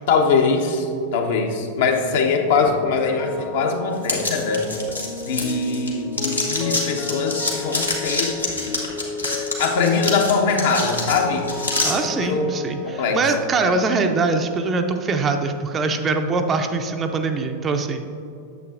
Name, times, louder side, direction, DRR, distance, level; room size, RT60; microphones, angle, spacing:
voice 1, 0.1-0.9 1.1-4.7 5.2-8.4 9.6-11.7 12.1-12.5 12.8-13.2, left 4 dB, 55° left, 3 dB, 0.9 m, -22 dB
sound 1, 2.3-16.4 16.7-16.9, left 5 dB, 30° left, 0.8 m, -34 dB
sound 2, 4.0-5.9 6.1-11.9, left 2 dB, 85° left, 1.3 m, -26 dB
voice 2, 11.8-18.0, right 3 dB, 25° right, 6 dB, 0.5 m, -23 dB
9.3 x 7.4 x 2.5 m, 2.7 s
figure-of-eight pair, 90°, 0 cm